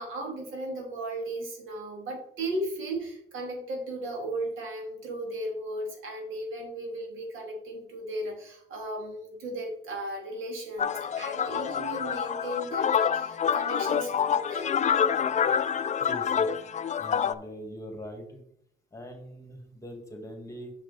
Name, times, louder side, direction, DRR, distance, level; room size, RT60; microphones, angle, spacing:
voice 1, 0.0-14.7, right 1 dB, 85° right, 1 dB, 2.3 m, -36 dB
sound 1, 10.8-17.3, left 7 dB, 35° left, 0.4 m, -27 dB
voice 2, 16.0-16.5 17.0-18.4 18.9-20.7, equal, 15° left, 4 dB, 2.0 m, -42 dB
6.3 x 6.2 x 4.1 m, 0.70 s
cardioid pair, 90°, 20 cm